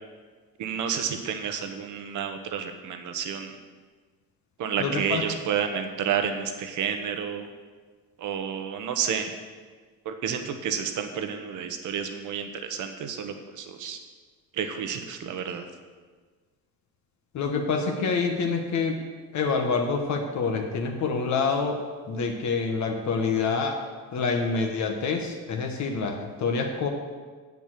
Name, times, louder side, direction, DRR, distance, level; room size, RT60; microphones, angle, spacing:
voice 1, 0.6-3.6 4.6-7.5 8.2-9.3 10.0-14.0 14.5-15.6, right 7 dB, 55° right, 7 dB, 1.2 m, -30 dB
voice 2, 4.8-5.2 17.3-19.0 19.3-23.8 24.1-26.9, left 4 dB, 50° left, 3 dB, 1.3 m, -27 dB
8.3 x 7.3 x 7.6 m, 1.5 s
cardioid pair, 140°, 36 cm